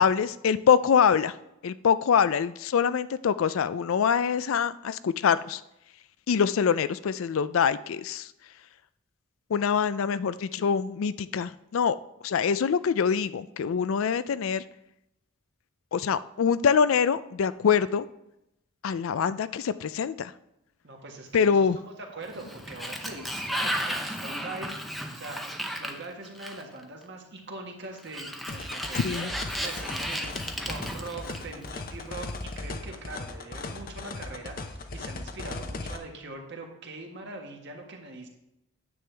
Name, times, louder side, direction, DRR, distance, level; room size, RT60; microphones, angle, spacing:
voice 1, 0.0-1.3 1.6-5.6 6.3-8.3 9.5-12.0 12.2-14.6 15.9-18.1 18.8-20.3 21.3-21.8 29.0-29.3, left 7 dB, 75° left, 15 dB, 0.4 m, -24 dB
voice 2, 20.8-25.4 25.7-38.3, right 2 dB, 55° right, 2 dB, 1.6 m, -42 dB
Sliding door, 22.2-26.8 28.0-31.7, equal, ahead, 0.7 m, -34 dB
sound 1, 28.5-36.0, left 3 dB, 45° left, 0.7 m, -38 dB
9.5 x 7.8 x 3.4 m, 0.84 s
head